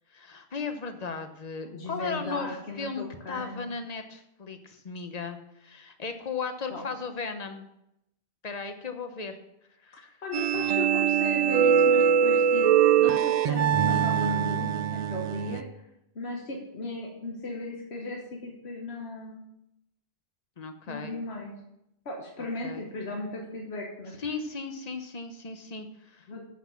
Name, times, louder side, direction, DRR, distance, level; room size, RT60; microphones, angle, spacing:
voice 1, 0.1-7.6 8.4-9.4 9.8-10.2 20.6-21.2 22.6-22.8 24.2-26.4, left 4 dB, 40° left, 7 dB, 1.0 m, -36 dB
voice 2, 1.6-3.7 6.7-6.9 10.2-15.7 16.1-19.4 20.9-21.5 22.0-24.2 26.3-26.4, left 2 dB, 80° left, -1 dB, 1.6 m, -36 dB
sound 1, 10.3-15.6, right 8 dB, 55° right, 0.5 m, -23 dB
7.9 x 6.2 x 7.1 m, 0.83 s
omnidirectional pair, 1.1 m